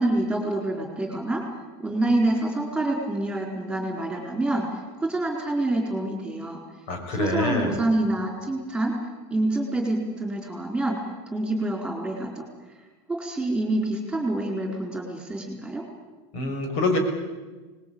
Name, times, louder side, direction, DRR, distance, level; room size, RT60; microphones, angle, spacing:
voice 1, 0.0-1.4 1.8-6.6 7.1-8.9 9.3-11.0 11.3-12.4 13.1-15.8, right 2 dB, 5° right, 1 dB, 4.4 m, -27 dB
voice 2, 6.9-7.8 16.3-17.0, left 2 dB, 55° left, 4 dB, 6.0 m, -25 dB
24.5 x 20.0 x 8.8 m, 1.3 s
supercardioid pair, 150°, 13 cm